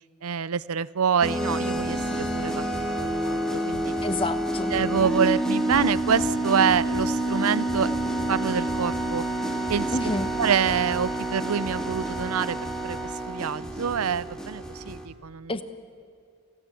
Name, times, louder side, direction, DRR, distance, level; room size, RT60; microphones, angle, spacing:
voice 1, 0.2-2.7 3.0-3.9 4.7-7.9 8.3-9.2 9.7-9.9 10.4-12.6 12.8-13.0 13.3-15.5, right 7 dB, 80° right, 20 dB, 0.6 m, -26 dB
sound 1, 1.2-15.1, right 1 dB, 5° left, 1.8 m, -28 dB
voice 2, 4.0-4.7 9.9-10.3 15.5-15.6, left 2 dB, 25° left, 11 dB, 1.1 m, -29 dB
27.5 x 16.5 x 8.6 m, 2.2 s
head